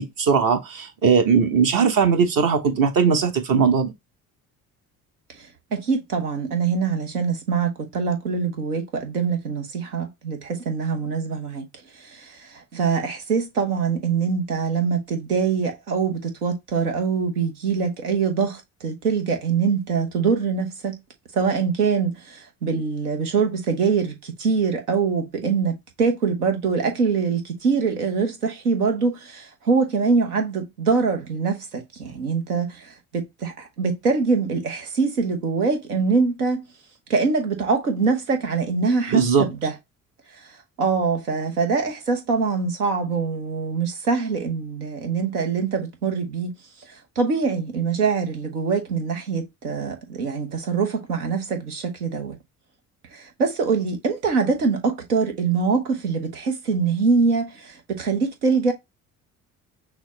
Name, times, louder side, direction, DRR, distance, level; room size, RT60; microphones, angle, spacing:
voice 1, 0.0-3.9 39.1-39.5, right 6 dB, 45° right, 1.2 m, -19 dB
voice 2, 5.7-11.7 12.0-21.0 21.3-36.6 37.1-39.7 40.8-46.5 47.2-52.4 53.1-58.7, right 5 dB, 80° right, 1.0 m, -24 dB
6.2 x 2.2 x 4.0 m
figure-of-eight pair, 50°, 44 cm